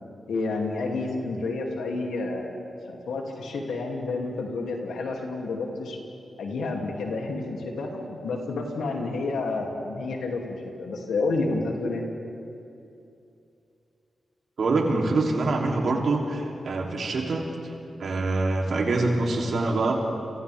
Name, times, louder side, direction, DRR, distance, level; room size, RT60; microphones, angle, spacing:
voice 1, 0.3-2.5 2.9-6.0 6.4-12.0, left 3 dB, 90° left, 0 dB, 3.0 m, -30 dB
voice 2, 14.6-17.5 18.0-20.0, right 3 dB, 70° right, -1 dB, 3.4 m, -25 dB
29.5 x 27.5 x 3.7 m, 2.7 s
cardioid pair, 55°, 0 cm